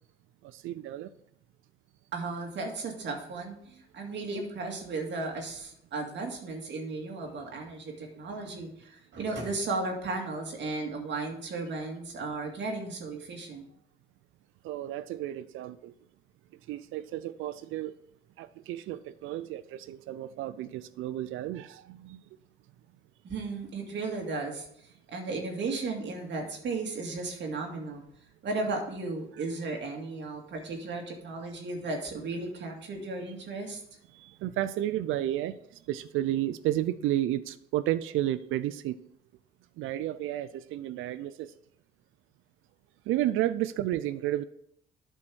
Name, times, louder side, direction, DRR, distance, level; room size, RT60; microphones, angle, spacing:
voice 1, 0.4-1.1 14.6-15.9 16.7-17.9 18.4-22.2 34.1-35.6 35.9-39.0 39.8-41.5 43.1-44.4, right 13 dB, 85° right, 13 dB, 0.4 m, -32 dB
voice 2, 2.1-13.7 23.2-24.7 25.1-28.0 28.4-33.8, right 3 dB, 65° right, 2 dB, 2.1 m, -35 dB
8.6 x 5.3 x 6.2 m, 0.70 s
cardioid pair, 90°, 20 cm